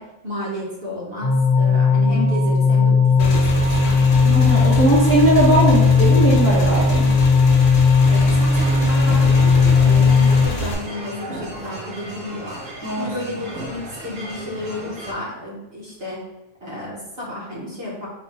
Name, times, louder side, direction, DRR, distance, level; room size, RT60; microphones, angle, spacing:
voice 1, 0.0-4.2 8.1-16.2 16.6-18.1, left 1 dB, 55° right, -5 dB, 1.2 m, -32 dB
sound 1, 1.2-10.5, left 4 dB, 55° left, 0.9 m, -16 dB
Motorcycle / Engine, 3.2-10.7, right 1 dB, 80° left, 1.2 m, -27 dB
voice 2, 4.2-7.1 12.8-13.1, right 1 dB, 10° left, -8 dB, 0.9 m, -19 dB
sound 2, 8.0-15.1, right 1 dB, 80° right, 1.5 m, -35 dB
3.9 x 2.4 x 4.2 m, 0.95 s
omnidirectional pair, 1.3 m